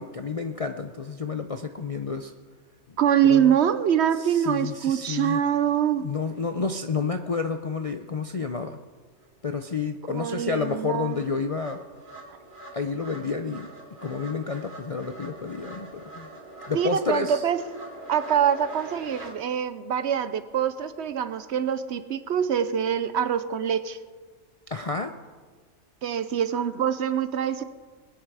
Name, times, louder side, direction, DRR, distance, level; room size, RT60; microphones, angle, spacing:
voice 1, 0.0-2.3 3.3-3.5 4.2-5.4 6.0-8.8 9.4-11.8 12.7-13.7 14.0-16.3 16.6-17.4 24.7-25.1, left 4 dB, 45° left, 7 dB, 0.4 m, -30 dB
voice 2, 3.0-6.1 10.1-11.2 16.7-17.6 18.1-24.0 26.0-27.6, right 9 dB, 65° right, 13 dB, 0.8 m, -24 dB
sound 1, 9.2-9.3 9.7-19.3, right 2 dB, 40° right, 2.5 m, -44 dB
20.5 x 9.9 x 4.8 m, 1.5 s
omnidirectional pair, 1.4 m